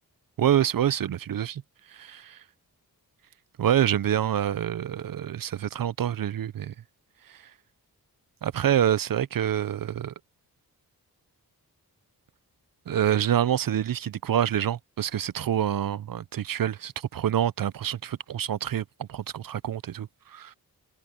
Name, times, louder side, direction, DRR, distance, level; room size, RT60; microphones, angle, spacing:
voice 1, 0.4-1.6 1.9-2.4 3.6-6.7 7.3-7.4 8.4-10.1 12.9-20.5, right 10 dB, 60° right, 0.6 m, -26 dB
wide cardioid pair, 120°, 38 cm